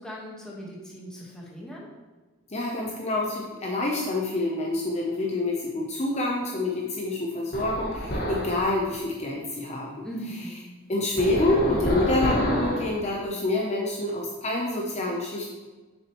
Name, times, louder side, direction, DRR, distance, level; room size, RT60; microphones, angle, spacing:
voice 1, 0.0-1.9 10.0-10.7, equal, 5° left, -4 dB, 1.4 m, -39 dB
voice 2, 2.5-10.0 10.9-15.5, left 2 dB, 35° left, -1 dB, 0.7 m, -27 dB
sound 1, 7.5-8.6 11.2-12.9, equal, 50° left, 1.5 m, -27 dB
7.1 x 6.5 x 3.0 m, 1.3 s
head